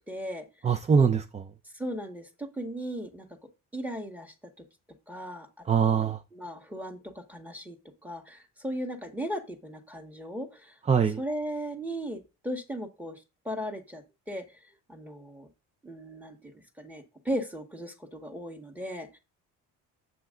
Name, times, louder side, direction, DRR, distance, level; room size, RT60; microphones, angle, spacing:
voice 1, 0.1-0.4 1.7-3.3 3.7-4.3 5.1-7.8 8.0-10.7 11.2-13.2 13.5-14.4 14.9-15.5 15.8-19.2, equal, 5° right, 1.8 m, -37 dB
voice 2, 0.6-1.5 5.6-6.2 10.9-11.2, right 6 dB, 20° right, 0.5 m, -23 dB
7.8 x 5.6 x 3.8 m
cardioid pair, 105°, 33 cm